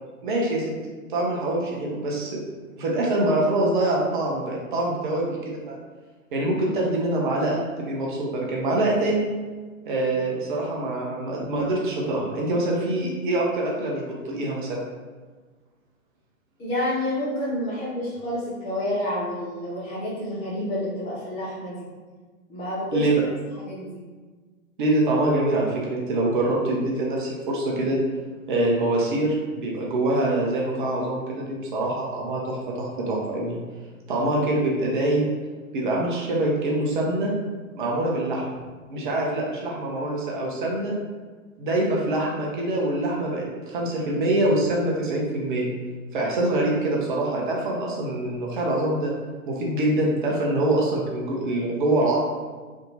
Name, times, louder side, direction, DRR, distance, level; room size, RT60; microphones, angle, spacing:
voice 1, 0.2-0.6 1.1-2.4 2.8-5.8 6.3-9.3 9.9-14.9 22.9-23.1 24.8-28.0 28.5-33.6 34.1-35.3 35.7-37.3 37.7-38.4 38.9-40.9 41.6-45.7 46.1-49.1 49.5-52.2, right 1 dB, 35° right, -3 dB, 0.8 m, -24 dB
voice 2, 16.6-21.9 22.5-23.1 23.6-24.0, left 1 dB, 15° left, -8 dB, 0.7 m, -29 dB
3.5 x 2.6 x 4.1 m, 1.4 s
figure-of-eight pair, 115°, 41 cm